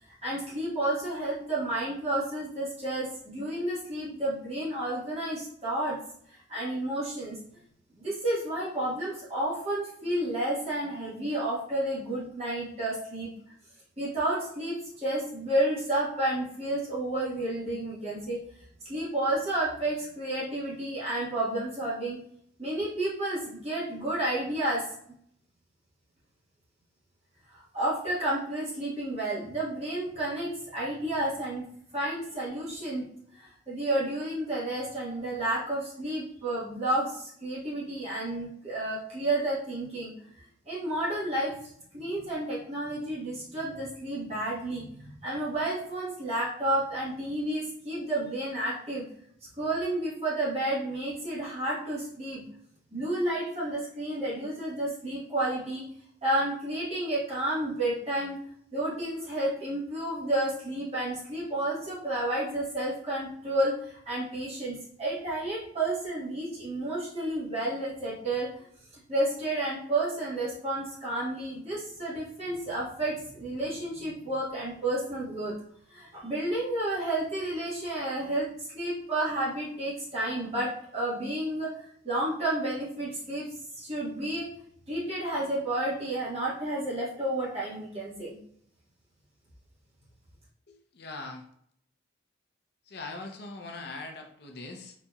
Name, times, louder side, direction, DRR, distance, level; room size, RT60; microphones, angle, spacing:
voice 1, 0.2-6.0 6.3-7.4 7.9-13.3 14.0-18.4 18.8-22.2 22.6-24.9 27.5-31.6 31.9-33.0 33.3-40.1 40.7-49.0 49.5-52.4 52.9-55.8 56.2-58.4 58.7-68.6 69.1-75.5 75.9-83.5 83.7-84.5 84.9-88.4, right 1 dB, 30° right, -8 dB, 1.2 m, -31 dB
voice 2, 90.7-91.4 92.9-94.9, left 3 dB, 55° left, 3 dB, 0.5 m, -41 dB
4.1 x 2.9 x 2.3 m, 0.67 s
head